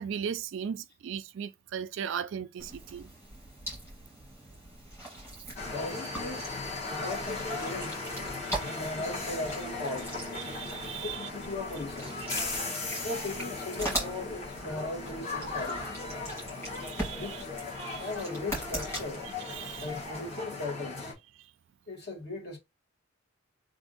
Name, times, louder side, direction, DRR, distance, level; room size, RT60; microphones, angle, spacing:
voice 1, 0.0-3.1 8.4-8.8 10.4-11.3 12.4-12.7 16.8-17.4 17.8-18.1 19.5-19.9, right 8 dB, 60° right, 0.3 m, -38 dB
sound 1, 2.6-20.4, right 1 dB, 10° left, 1.8 m, -41 dB
sound 2, 5.6-21.1, left 3 dB, 30° left, 1.2 m, -37 dB
voice 2, 5.7-8.0 8.6-10.1 11.0-12.2 13.0-15.9 17.1-17.5 17.9-19.2 19.8-21.1 21.9-22.6, left 2 dB, 50° left, 1.4 m, -38 dB
3.5 x 2.5 x 3.9 m
head